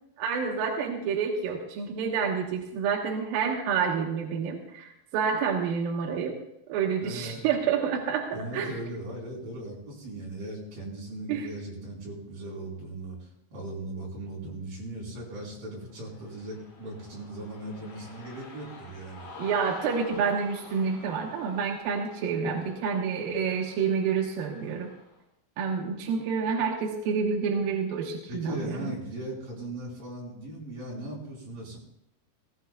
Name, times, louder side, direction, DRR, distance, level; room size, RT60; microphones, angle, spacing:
voice 1, 0.2-6.4 6.7-8.7 11.3-11.5 19.4-24.9 25.6-28.9, right 6 dB, 70° right, 0 dB, 2.2 m, -28 dB
voice 2, 7.0-7.4 8.3-13.2 13.5-19.3 28.3-31.8, right 1 dB, 45° right, -4 dB, 6.0 m, -38 dB
Cheering, 15.9-25.1, left 3 dB, 70° left, 5.4 m, -48 dB
17.5 x 17.5 x 2.4 m, 0.81 s
omnidirectional pair, 5.7 m